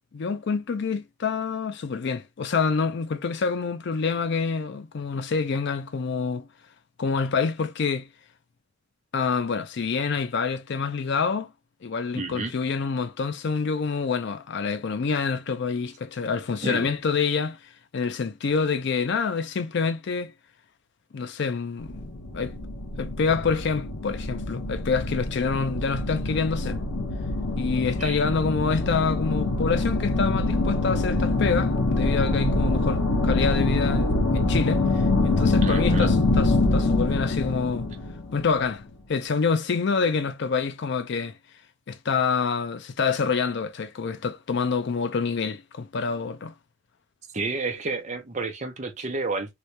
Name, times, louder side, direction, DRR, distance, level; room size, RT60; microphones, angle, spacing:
voice 1, 0.1-6.5 7.0-8.1 9.1-11.5 11.8-17.6 17.9-20.3 21.1-22.1 22.3-22.6 23.0-26.8 27.6-37.9 38.3-38.8 39.1-41.4 41.9-46.5, left 5 dB, 60° left, 0.4 m, -27 dB
voice 2, 12.1-12.5 16.6-16.9 28.0-28.2 35.6-36.1 47.3-49.5, right 3 dB, 35° right, 0.7 m, -30 dB
sound 1, 21.8-38.8, left 2 dB, 85° left, 0.8 m, -25 dB
3.0 x 2.7 x 3.2 m
head